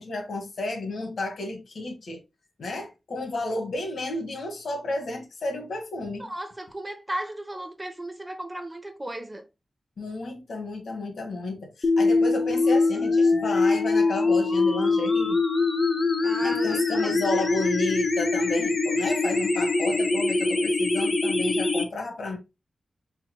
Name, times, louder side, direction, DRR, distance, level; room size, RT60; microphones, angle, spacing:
voice 1, 0.0-2.2 2.6-6.3 10.0-15.4 16.4-22.4, left 2 dB, 80° left, 1.5 m, -32 dB
voice 2, 6.2-9.5 16.2-17.1, right 1 dB, 15° right, 0.9 m, -35 dB
sound 1, 11.8-21.8, left 3 dB, 50° left, 0.8 m, -23 dB
4.6 x 4.2 x 2.2 m
wide cardioid pair, 95°, 0 cm